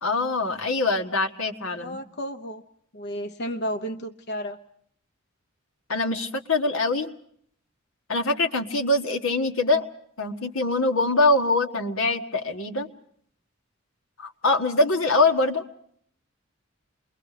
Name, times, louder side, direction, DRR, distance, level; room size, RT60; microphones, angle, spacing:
voice 1, 0.0-2.0 5.9-7.1 8.1-9.9 10.2-12.9 14.2-15.6, left 2 dB, 90° left, 4 dB, 1.7 m, -23 dB
voice 2, 1.8-2.6 2.9-4.6, equal, 55° left, 6 dB, 0.9 m, -32 dB
29.0 x 22.5 x 5.0 m, 0.64 s
head